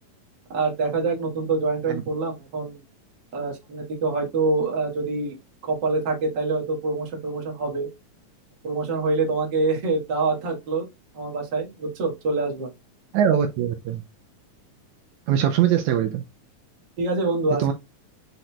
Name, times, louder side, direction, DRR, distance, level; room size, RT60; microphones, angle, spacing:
voice 1, 0.5-2.8 3.3-5.3 5.6-7.9 8.6-10.9 11.1-12.7 17.0-17.7, right 3 dB, 45° right, 1.5 m, -25 dB
voice 2, 13.1-14.0 15.3-16.2 17.6-17.7, right 9 dB, 90° right, 1.7 m, -21 dB
5.9 x 3.9 x 2.2 m
omnidirectional pair, 4.0 m